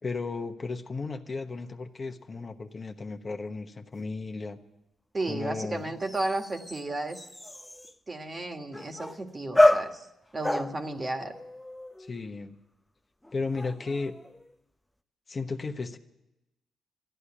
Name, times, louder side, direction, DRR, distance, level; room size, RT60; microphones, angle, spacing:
voice 1, 0.0-4.6 5.3-5.9 12.0-12.5 13.3-14.1 15.3-16.0, left 3 dB, 35° left, 6 dB, 1.0 m, -34 dB
sound 1, 3.9-4.0 6.0-8.0 8.7-9.3 9.5-12.3 13.2-14.5, left 1 dB, 5° left, 0.6 m, -29 dB
voice 2, 5.1-7.3 8.1-10.1 10.3-11.3, right 2 dB, 30° right, 5 dB, 1.6 m, -33 dB
13.5 x 9.9 x 9.9 m, 0.95 s
cardioid pair, 85°, 0 cm